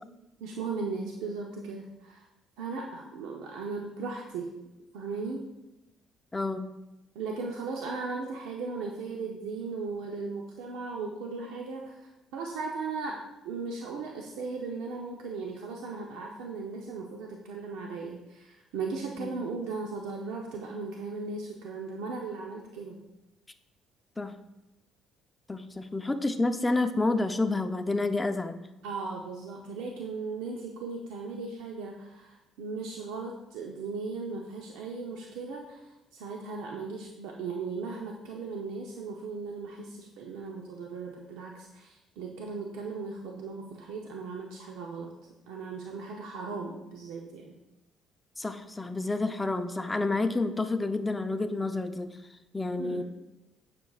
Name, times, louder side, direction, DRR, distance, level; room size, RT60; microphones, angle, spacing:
voice 1, 0.4-2.2 2.6-4.5 4.9-5.5 7.1-23.0 28.8-45.1 45.5-47.5 52.8-53.0, right 4 dB, 90° right, 0 dB, 0.7 m, -37 dB
voice 2, 6.3-6.7 19.2-19.3 24.2-24.3 25.5-28.7 48.4-52.2 52.5-53.0, left 2 dB, 15° left, 8 dB, 0.5 m, -29 dB
9.5 x 6.1 x 2.4 m, 0.96 s
cardioid pair, 95°, 0 cm